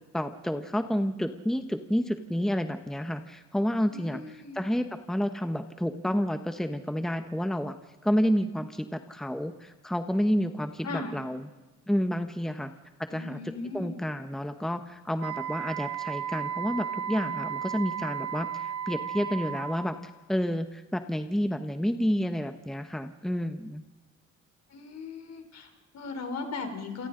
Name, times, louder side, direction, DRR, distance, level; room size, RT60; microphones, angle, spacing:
voice 1, 0.1-7.8 8.0-11.5 11.9-12.7 13.1-13.4 13.7-19.9 20.3-23.8, equal, ahead, 7 dB, 1.1 m, -30 dB
voice 2, 3.9-4.6 10.8-11.1 13.1-13.9 24.7-27.1, left 4 dB, 60° left, 6 dB, 3.7 m, -38 dB
Wind instrument woodwind instrument, 15.2-20.0, right 9 dB, 55° right, 2.3 m, -34 dB
29.0 x 28.0 x 3.9 m, 1.1 s
cardioid pair, 90°, 30 cm